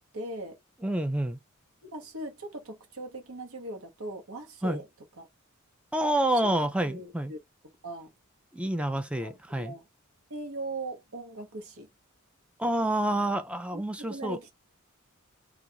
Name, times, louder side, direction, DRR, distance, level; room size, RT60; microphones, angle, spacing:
voice 1, 0.1-0.6 1.8-4.8 5.2-5.3 6.4-6.6 6.8-7.4 7.8-8.1 9.2-9.3 9.6-9.8 10.3-11.9 12.8-12.9 13.7-14.5, right 2 dB, 75° right, 1.0 m, -39 dB
voice 2, 0.8-1.4 4.6-4.8 5.9-7.3 8.5-9.7 12.6-14.4, right 1 dB, 5° right, 0.3 m, -28 dB
2.4 x 2.3 x 2.7 m
head